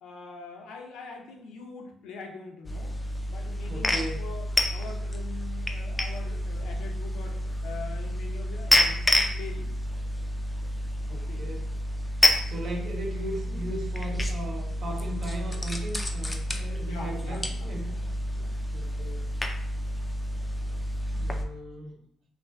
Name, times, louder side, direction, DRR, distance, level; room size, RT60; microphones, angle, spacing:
voice 1, 0.0-2.9 3.3-9.7 11.1-11.4 16.8-17.9 18.3-18.5, left 4 dB, 85° left, 2 dB, 0.4 m, -43 dB
sound 1, 2.6-21.4, left 1 dB, 15° left, 0.3 m, -29 dB
voice 2, 3.7-4.3 11.1-11.7 12.5-17.9 18.7-19.2 21.2-22.0, right 1 dB, 65° right, 0 dB, 0.7 m, -37 dB
2.4 x 2.4 x 2.2 m, 0.69 s
cardioid pair, 90°, 0 cm